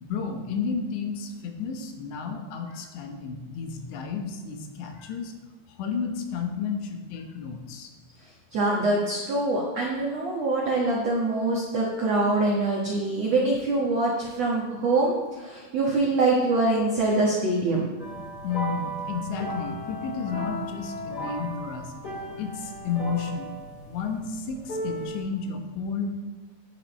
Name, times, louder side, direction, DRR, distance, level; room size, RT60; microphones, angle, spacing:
voice 1, 0.0-5.3 5.8-7.9 18.4-21.9 22.3-23.5 23.9-26.1, left 5 dB, 80° left, 4 dB, 3.2 m, -32 dB
voice 2, 8.5-17.9, right 2 dB, 75° right, -3 dB, 1.5 m, -24 dB
sound 1, 18.0-25.2, right 1 dB, 35° left, 1.7 m, -36 dB
10.0 x 9.6 x 4.2 m, 1.3 s
omnidirectional pair, 5.2 m